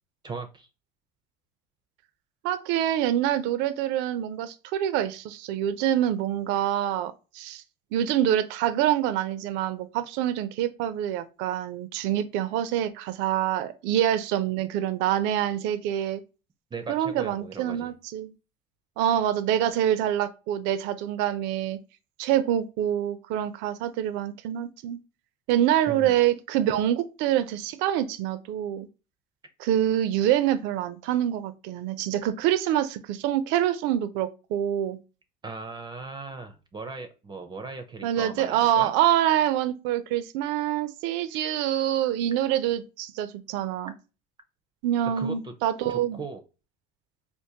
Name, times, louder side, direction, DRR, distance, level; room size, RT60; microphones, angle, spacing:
voice 1, 0.2-0.7 16.7-17.9 25.9-26.1 35.4-38.9 45.2-45.5 45.9-46.4, right 4 dB, 25° right, 0.5 m, -38 dB
voice 2, 2.4-7.6 7.9-16.2 16.9-18.3 19.0-21.8 22.2-25.0 25.5-28.9 29.6-35.0 38.0-43.9 44.8-46.2, right 11 dB, 75° right, 0.5 m, -26 dB
3.6 x 2.5 x 2.7 m
supercardioid pair, 105°, 19 cm